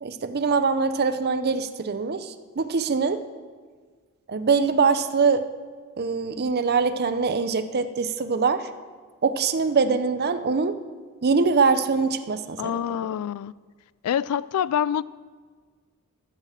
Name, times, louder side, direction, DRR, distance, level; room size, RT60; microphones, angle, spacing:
voice 1, 0.0-3.2 4.3-5.4 6.0-8.7 9.2-10.8 11.2-12.6, right 5 dB, 45° right, 0.6 m, -23 dB
voice 2, 12.6-13.5 14.0-15.0, left 9 dB, 85° left, 0.3 m, -26 dB
14.0 x 6.6 x 7.4 m
head